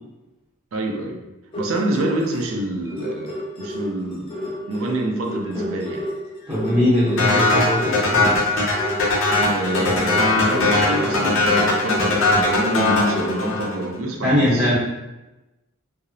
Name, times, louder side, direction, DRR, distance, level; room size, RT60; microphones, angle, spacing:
voice 1, 0.7-1.2 1.6-6.0 9.5-14.7, right 1 dB, 75° right, 2 dB, 0.4 m, -26 dB
sound 1, 1.5-2.5 2.9-13.5, equal, 25° left, 0.4 m, -30 dB
voice 2, 6.5-8.3 14.2-14.7, left 1 dB, 20° right, -12 dB, 0.7 m, -20 dB
sound 2, 7.2-13.8, left 2 dB, 70° left, 0.6 m, -20 dB
2.8 x 2.0 x 2.5 m, 1.0 s
head